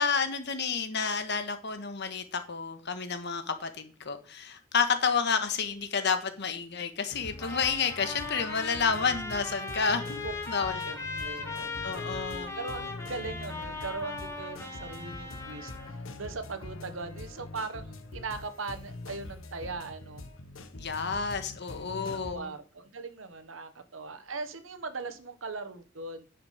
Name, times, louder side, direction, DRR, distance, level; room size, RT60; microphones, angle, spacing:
voice 1, 0.0-10.2 10.5-10.8 11.8-12.5 20.7-22.5, left 5 dB, 60° left, 8 dB, 1.5 m, -30 dB
sound 1, 7.1-22.4, left 2 dB, 85° left, 1.3 m, -44 dB
Trumpet, 7.4-16.0, left 3 dB, 15° left, 2.2 m, -38 dB
voice 2, 10.6-20.2 21.9-26.3, right 3 dB, 75° right, 11 dB, 1.2 m, -40 dB
10.0 x 5.9 x 5.1 m, 0.38 s
head